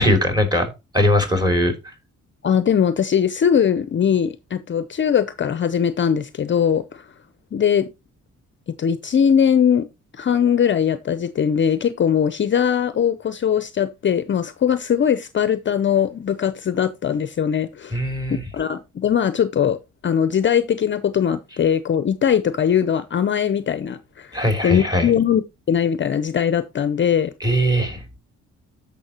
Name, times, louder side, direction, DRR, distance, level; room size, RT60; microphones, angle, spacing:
voice 1, 0.0-1.7 17.9-18.4 24.3-25.1 27.4-28.0, left 1 dB, 15° right, 3.2 m, -20 dB
voice 2, 2.4-7.0 7.5-7.9 8.8-9.9 10.1-18.0 18.5-19.8 20.0-27.3, left 8 dB, 40° left, 0.6 m, -20 dB
14.0 x 5.6 x 2.9 m
cardioid pair, 90°, 30 cm